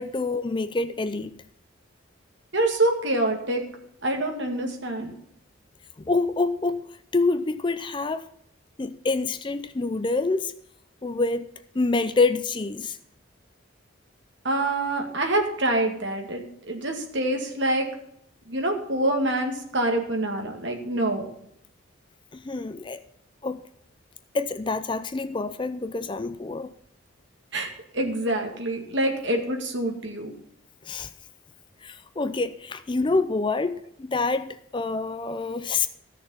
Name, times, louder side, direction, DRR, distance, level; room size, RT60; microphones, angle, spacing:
voice 1, 0.0-1.3 6.0-6.8 7.1-8.3 8.8-10.5 11.0-11.5 11.7-13.0 22.3-23.0 23.4-23.6 24.3-26.7 30.8-31.1 31.8-35.9, left 3 dB, 25° left, 0.4 m, -26 dB
voice 2, 2.5-3.6 4.0-5.1 14.4-17.9 18.5-21.3 27.5-30.3, right 1 dB, 55° right, 2.2 m, -26 dB
14.5 x 6.7 x 5.6 m
head